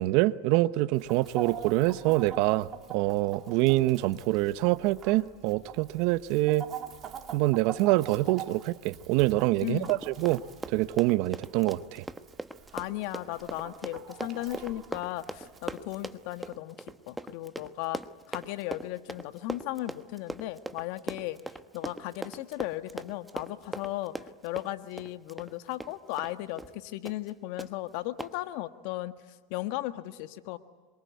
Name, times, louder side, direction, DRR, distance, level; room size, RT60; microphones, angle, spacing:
voice 1, 0.0-6.7 7.3-10.4 10.7-12.0, right 18 dB, 60° right, 0.9 m, -25 dB
Chicken rooster, 1.0-16.5, right 8 dB, 35° right, 3.0 m, -45 dB
voice 2, 9.6-10.0 12.7-16.8 17.1-18.0 18.3-21.4 21.7-24.2 24.4-29.1 29.5-30.6, left 16 dB, 65° left, 1.5 m, -36 dB
Run, 9.8-26.3 26.6-26.8 27.1-27.3 27.6-27.7 28.2-28.3, right 2 dB, 5° right, 1.2 m, -40 dB
26.0 x 23.5 x 9.4 m
hypercardioid pair, 105°, 0 cm